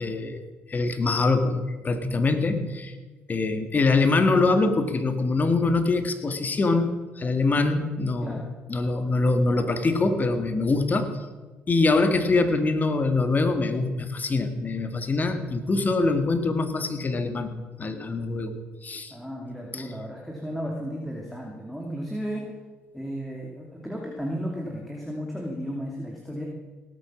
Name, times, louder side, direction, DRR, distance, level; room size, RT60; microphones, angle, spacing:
voice 1, 0.0-3.0 3.3-8.4 8.7-11.2 11.7-17.5 17.8-19.1 19.7-19.9, left 3 dB, 35° left, 9 dB, 1.8 m, -24 dB
voice 2, 19.1-22.5 22.9-26.5, equal, ahead, -2 dB, 2.7 m, -34 dB
18.0 x 8.7 x 6.2 m, 1.3 s
supercardioid pair, 65°, 5 cm